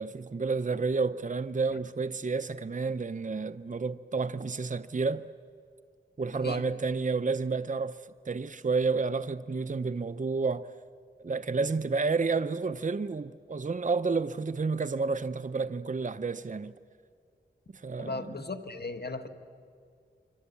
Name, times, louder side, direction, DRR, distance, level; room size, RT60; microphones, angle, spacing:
voice 1, 0.0-5.3 6.2-8.0 8.2-10.7 11.2-16.7 17.7-18.2, right 4 dB, 40° right, 0.7 m, -30 dB
voice 2, 18.0-19.3, left 3 dB, 60° left, 1.8 m, -37 dB
28.5 x 24.0 x 8.4 m
wide cardioid pair, 50°, 19 cm